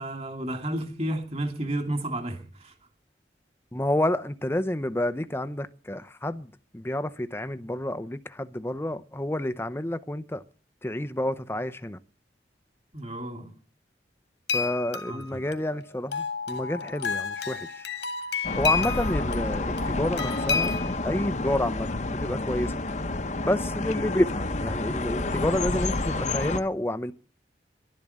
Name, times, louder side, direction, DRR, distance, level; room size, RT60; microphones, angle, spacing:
voice 1, 0.0-2.7 12.9-13.5 15.1-15.4, right 1 dB, 35° right, 2.8 m, -32 dB
voice 2, 3.7-10.4 10.8-12.0 14.5-17.9 18.6-20.7 21.0-22.7 23.4-27.1, left 1 dB, 15° left, 0.6 m, -29 dB
sound 1, 14.5-21.0, left 5 dB, 80° left, 2.0 m, -31 dB
sound 2, 18.4-26.6, left 2 dB, 40° left, 0.9 m, -29 dB
12.0 x 11.0 x 9.9 m
head